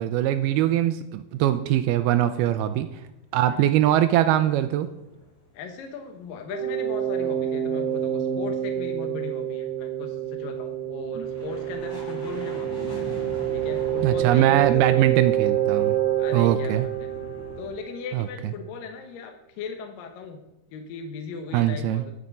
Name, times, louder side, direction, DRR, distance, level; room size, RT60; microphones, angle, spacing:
voice 1, 0.0-2.9 3.3-4.9 11.2-11.3 14.0-16.0 16.3-16.9 18.1-18.3 21.5-22.0, right 12 dB, 85° right, 10 dB, 2.5 m, -22 dB
sound 1, 3.5-5.6 5.9-17.7, left 2 dB, 30° left, 5.6 m, -43 dB
voice 2, 5.5-13.1 13.5-15.3 16.2-17.1 17.6-20.4 20.7-22.2, left 5 dB, 70° left, 4 dB, 2.5 m, -38 dB
sound 2, 6.5-18.1, right 11 dB, 25° right, 1.5 m, -27 dB
14.0 x 7.3 x 5.3 m, 0.95 s
omnidirectional pair, 4.6 m